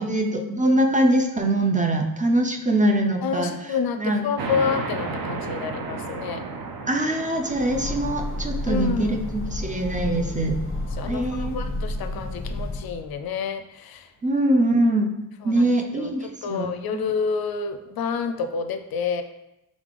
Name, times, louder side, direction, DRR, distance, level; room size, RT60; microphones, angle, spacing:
voice 1, 0.0-3.5 4.0-4.2 6.9-10.6 11.0-11.5 14.2-15.1 15.4-17.1, right 1 dB, 20° right, 3 dB, 0.5 m, -23 dB
voice 2, 3.2-6.4 8.7-9.2 10.9-14.1 15.4-19.2, left 6 dB, 60° left, 7 dB, 0.5 m, -29 dB
sound 1, 4.4-11.5, right 4 dB, 55° right, 0.7 m, -34 dB
Train, 7.4-13.1, left 1 dB, 30° left, 0.8 m, -31 dB
3.6 x 3.6 x 3.3 m, 0.90 s
cardioid pair, 60°, 42 cm